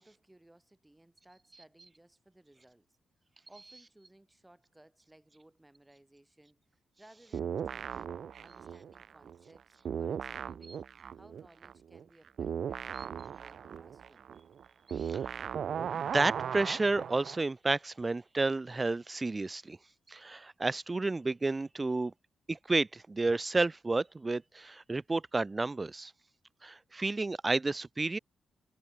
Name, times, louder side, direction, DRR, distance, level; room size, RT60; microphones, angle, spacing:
voice 1, 0.0-3.0 3.5-14.3, right 1 dB, 15° right, 6.5 m, -61 dB
sound 1, 7.3-9.6 9.8-17.4, right 8 dB, 65° right, 1.6 m, -38 dB
voice 2, 14.9-15.4 15.9-19.8 20.1-22.1 22.5-26.1 26.6-28.2, right 3 dB, 30° right, 1.7 m, -31 dB
hypercardioid pair, 45°, 0 cm